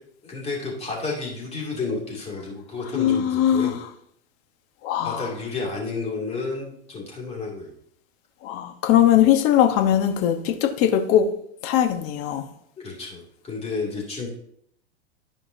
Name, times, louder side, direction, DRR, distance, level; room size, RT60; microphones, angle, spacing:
voice 1, 0.2-3.8 5.0-7.7 12.8-14.3, left 3 dB, 20° left, 2.7 m, -31 dB
voice 2, 2.9-3.8 4.8-5.3 8.4-11.3 11.6-12.5, left 10 dB, 40° left, 1.2 m, -20 dB
13.5 x 5.3 x 2.8 m
hypercardioid pair, 120°, 34 cm